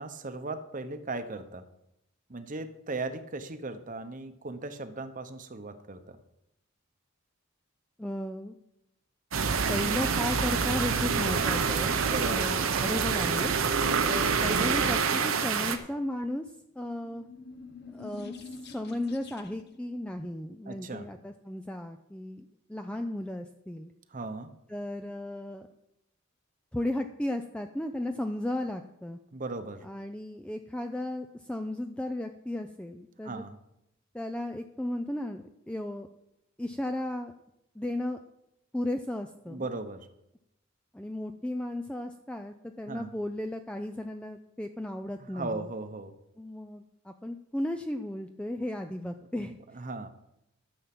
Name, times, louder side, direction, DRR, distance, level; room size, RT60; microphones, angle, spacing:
voice 1, 0.0-1.6 2.3-6.2 12.0-12.5 20.7-21.1 24.1-24.5 29.3-29.9 33.2-33.6 39.5-40.1 42.9-43.1 45.2-46.1 49.4-50.1, right 3 dB, 40° right, 9 dB, 1.0 m, -37 dB
voice 2, 8.0-8.5 9.7-16.4 16.7-17.3 17.9-18.3 18.7-23.9 24.7-25.7 26.7-29.2 29.8-33.4 34.1-36.1 36.6-37.3 37.8-38.2 38.7-39.7 40.9-45.7 46.4-49.8, left 1 dB, 5° left, 6 dB, 0.4 m, -35 dB
sound 1, 9.3-15.8, right 6 dB, 85° right, 1.0 m, -27 dB
sound 2, 9.4-15.0, right 4 dB, 55° right, 0.6 m, -34 dB
sound 3, 16.7-19.8, left 4 dB, 55° left, 0.9 m, -46 dB
13.0 x 7.1 x 6.0 m, 0.84 s
head